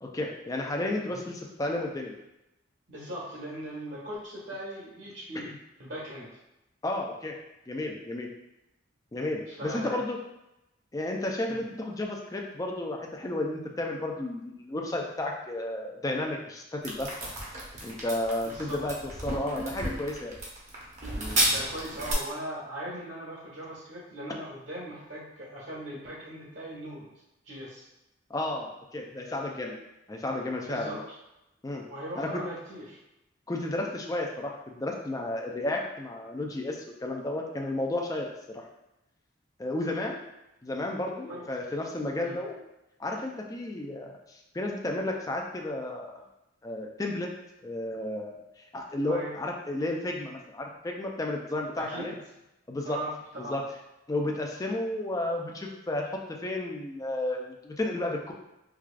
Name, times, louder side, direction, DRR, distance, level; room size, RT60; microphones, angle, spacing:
voice 1, 0.0-2.2 5.5-5.6 6.8-7.4 7.7-8.3 9.1-10.2 10.9-17.1 17.8-18.9 19.2-20.3 21.2-21.5 28.3-29.8 30.1-31.0 31.6-31.8 32.2-32.4 33.5-38.7 39.6-40.2 40.6-42.6 43.0-46.1 46.6-47.3 47.6-52.1 52.7-53.0 53.4-53.6 54.1-58.3, left 1 dB, 20° left, 1 dB, 0.4 m, -32 dB
voice 2, 2.9-5.5 5.8-6.3 9.5-10.0 11.5-11.6 18.4-18.8 21.5-27.1 27.4-27.9 30.7-31.0 31.9-33.0 41.3-41.5 42.2-42.4 49.0-49.3 51.8-52.1 52.8-53.6, right 1 dB, 70° right, -7 dB, 1.5 m, -39 dB
sound 1, 16.8-22.1, right 1 dB, 40° right, 0.8 m, -32 dB
4.7 x 2.3 x 2.4 m, 0.91 s
head